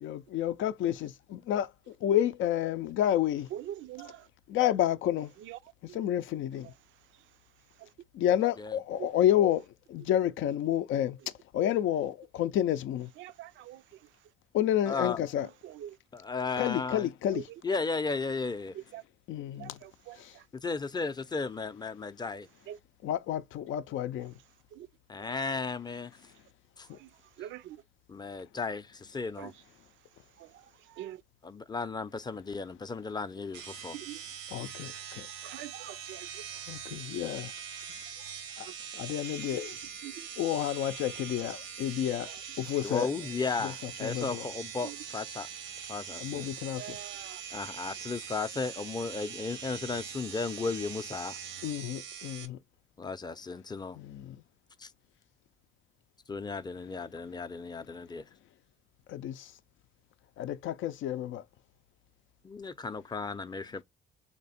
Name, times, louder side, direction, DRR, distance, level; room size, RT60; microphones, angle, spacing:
voice 1, 0.0-3.5 4.5-5.3 5.9-6.7 8.1-9.6 9.9-11.2 11.5-13.1 14.5-15.5 16.6-17.4 19.3-19.8 20.2-20.3 23.0-24.3 34.5-35.3 36.7-37.5 38.6-38.7 38.9-39.7 40.4-43.1 43.6-44.5 46.2-47.0 51.6-52.6 54.0-54.4 59.1-59.5 60.4-61.4, left 11 dB, 75° left, 0.5 m, -30 dB
voice 2, 3.5-4.3 5.4-6.0 6.6-6.7 7.1-7.2 7.8-7.9 9.0-9.1 13.2-14.1 15.4-16.0 17.3-17.6 18.7-19.0 19.6-20.5 22.7-22.8 24.7-24.9 26.8-27.8 29.4-29.6 30.4-31.2 33.9-34.2 35.4-36.4 38.6-38.7 39.5-39.7 40.0-40.1 42.3-42.4 44.8-45.0 46.8-47.4, right 12 dB, 75° right, 0.4 m, -45 dB
voice 3, 14.9-15.2 16.1-17.1 17.6-18.7 20.6-22.5 25.1-26.1 26.8-26.9 28.1-29.5 31.4-34.0 42.8-45.5 45.9-46.5 47.5-51.4 53.0-54.0 54.8-54.9 56.3-58.2 62.4-63.8, left 4 dB, 20° left, 0.5 m, -35 dB
sound 1, 33.5-52.5, right 8 dB, 90° right, 0.8 m, -42 dB
3.5 x 2.9 x 4.1 m
cardioid pair, 90°, 20 cm